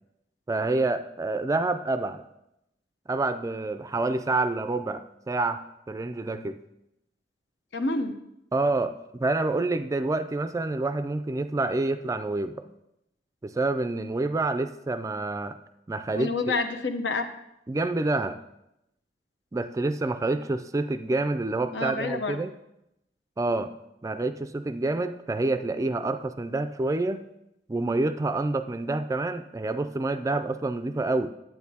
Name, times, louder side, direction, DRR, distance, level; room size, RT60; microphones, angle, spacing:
voice 1, 0.5-2.2 3.1-6.6 8.5-12.7 13.4-15.6 15.9-16.6 17.7-18.4 19.5-22.5 23.4-23.7 24.0-27.2 27.7-31.3, right 2 dB, 20° right, 10 dB, 0.3 m, -28 dB
voice 2, 7.7-8.1 16.1-17.2 21.7-22.4, left 3 dB, 85° left, 6 dB, 0.8 m, -28 dB
10.5 x 8.7 x 2.8 m, 0.85 s
head